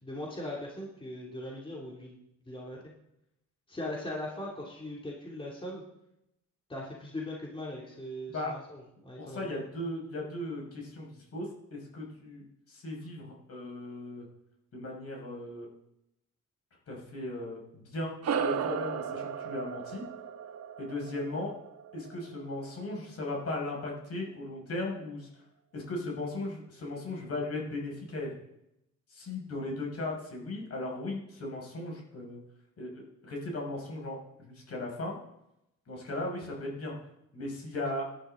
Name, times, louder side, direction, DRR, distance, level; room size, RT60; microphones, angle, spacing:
voice 1, 0.0-2.8 3.7-5.8 6.7-9.6, left 1 dB, 15° left, -3 dB, 2.9 m, -40 dB
voice 2, 9.2-14.3 14.7-15.7 16.9-20.0 20.8-21.5 21.9-25.3 25.7-28.3 29.1-32.4 32.8-35.2 35.9-36.9 37.3-38.0, left 2 dB, 55° left, -1 dB, 6.1 m, -37 dB
sound 1, 18.2-23.0, right 7 dB, 55° right, 1.1 m, -35 dB
17.5 x 11.5 x 3.9 m, 0.83 s
cardioid pair, 90°, 30 cm